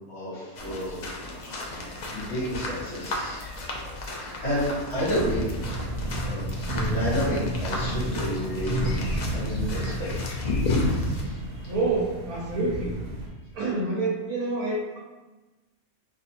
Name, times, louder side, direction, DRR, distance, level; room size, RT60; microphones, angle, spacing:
voice 1, 0.1-0.9 1.5-1.8 2.1-3.4 4.1-5.5 6.2-9.0 9.3-10.4 11.1-11.7, equal, 50° left, -8 dB, 1.5 m, -31 dB
sound 1, 0.6-11.2, left 2 dB, 75° left, 0.4 m, -32 dB
sound 2, 5.0-13.3, right 1 dB, 45° right, 0.6 m, -31 dB
voice 2, 11.7-13.0 13.5-15.0, right 3 dB, 80° right, -5 dB, 1.3 m, -27 dB
3.0 x 2.5 x 4.2 m, 1.1 s
omnidirectional pair, 1.5 m